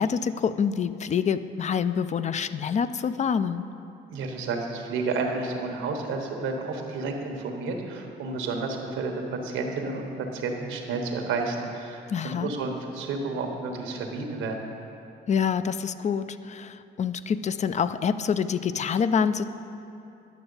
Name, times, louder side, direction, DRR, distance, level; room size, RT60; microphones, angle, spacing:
voice 1, 0.0-3.7 12.1-12.5 15.3-19.4, left 7 dB, 35° left, 13 dB, 0.4 m, -26 dB
voice 2, 4.1-14.7, right 3 dB, 90° right, 3 dB, 1.2 m, -31 dB
10.5 x 7.0 x 5.4 m, 2.7 s
cardioid pair, 90°, 20 cm